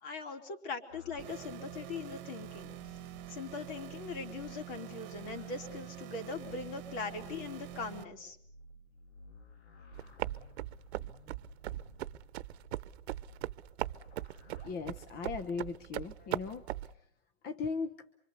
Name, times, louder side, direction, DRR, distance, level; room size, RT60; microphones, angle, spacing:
voice 1, 0.0-2.8 3.3-8.4 16.2-16.3, left 4 dB, 55° left, 5 dB, 4.1 m, -41 dB
sound 1, 0.9-15.7, left 2 dB, 90° left, 3.1 m, -57 dB
sound 2, 1.2-8.0, right 14 dB, 35° right, 1.4 m, -46 dB
sound 3, 9.9-16.9, right 14 dB, 75° right, 0.9 m, -39 dB
voice 2, 14.6-16.6 17.4-17.9, left 5 dB, 30° left, 10 dB, 1.1 m, -37 dB
25.5 x 24.5 x 6.8 m, 0.70 s
supercardioid pair, 135°, 32 cm